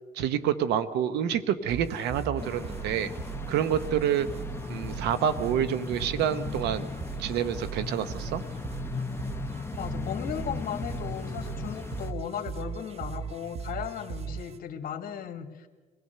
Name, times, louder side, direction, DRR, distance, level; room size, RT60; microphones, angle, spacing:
voice 1, 0.2-3.1 3.5-4.3 4.7-6.9 7.2-8.4, right 9 dB, 80° right, 13 dB, 1.0 m, -28 dB
sound 1, 1.7-14.6, right 8 dB, 40° right, 0.8 m, -39 dB
sound 2, 2.4-12.1, left 4 dB, 15° left, 0.8 m, -37 dB
voice 2, 9.8-15.7, left 8 dB, 60° left, 7 dB, 1.8 m, -36 dB
23.5 x 17.0 x 6.8 m, 1.4 s
cardioid pair, 110°, 17 cm